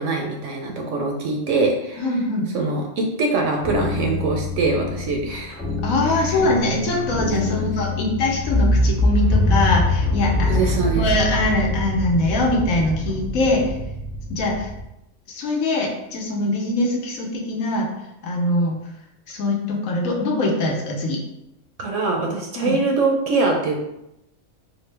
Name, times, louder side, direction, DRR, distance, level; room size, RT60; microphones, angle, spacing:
voice 1, 0.0-2.0 2.5-5.6 6.2-6.4 7.4-7.7 10.5-11.1 21.8-23.8, right 3 dB, 70° right, 1 dB, 0.8 m, -23 dB
voice 2, 2.0-2.5 5.8-10.6 11.0-13.8 14.3-14.7 15.3-17.9 18.2-18.8 19.3-21.2 22.6-22.8, left 2 dB, 70° left, 0 dB, 1.1 m, -22 dB
sound 1, 3.5-14.8, left 1 dB, 30° left, 1.2 m, -24 dB
4.2 x 2.1 x 3.2 m, 0.86 s
omnidirectional pair, 1.5 m